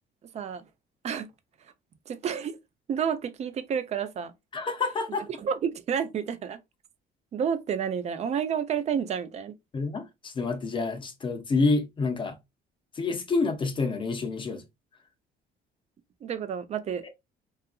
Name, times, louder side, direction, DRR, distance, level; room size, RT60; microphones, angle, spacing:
voice 1, 0.3-0.7 1.0-1.3 2.1-2.6 2.9-4.3 5.4-6.6 7.3-9.6 16.2-17.0, right 7 dB, 40° right, 0.4 m, -30 dB
voice 2, 4.5-5.3 9.7-12.4 13.0-14.6, left 3 dB, 30° left, 0.5 m, -28 dB
2.7 x 2.4 x 2.3 m
cardioid pair, 110°, 17 cm